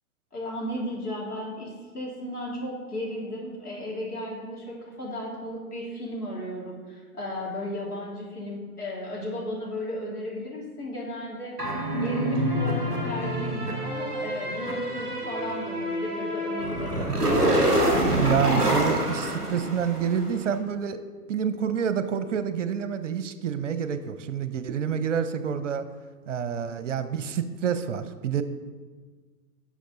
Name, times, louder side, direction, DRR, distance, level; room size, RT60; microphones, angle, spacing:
voice 1, 0.3-11.5 11.9-17.6, left 1 dB, 75° left, -4 dB, 3.1 m, -35 dB
sound 1, 11.6-20.3, right 1 dB, ahead, 0.3 m, -26 dB
voice 2, 18.1-21.0 21.3-25.8 26.3-28.4, right 7 dB, 55° right, 11 dB, 0.7 m, -28 dB
11.5 x 6.3 x 3.9 m, 1.4 s
figure-of-eight pair, 110°, 45 cm